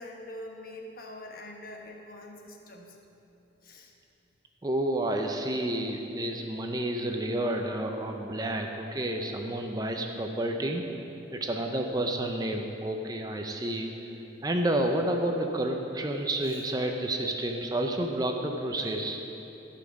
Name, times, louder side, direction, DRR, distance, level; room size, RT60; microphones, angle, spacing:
voice 1, 0.0-3.0 3.6-3.9 16.5-16.6 18.8-19.0, left 1 dB, 45° left, 1 dB, 1.2 m, -44 dB
voice 2, 4.6-10.8 11.3-14.1 14.4-19.2, right 1 dB, 20° right, 3 dB, 0.5 m, -30 dB
13.5 x 5.8 x 6.2 m, 3.0 s
head